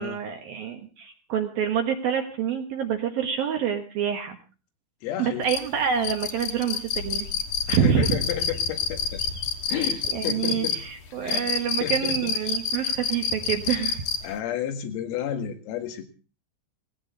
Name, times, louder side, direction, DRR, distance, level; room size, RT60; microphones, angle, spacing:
voice 1, 0.0-4.4 5.2-7.3 7.7-8.2 9.8-14.3, right 8 dB, 65° right, 4 dB, 2.6 m, -27 dB
voice 2, 5.0-5.4 7.7-9.2 9.7-10.8 11.2-11.5 11.8-12.3 13.7-14.0 14.2-16.1, left 9 dB, 90° left, 5 dB, 4.6 m, -32 dB
sound 1, 5.5-14.4, left 6 dB, 65° left, 2.1 m, -28 dB
18.5 x 17.5 x 4.0 m, 0.35 s
omnidirectional pair, 5.9 m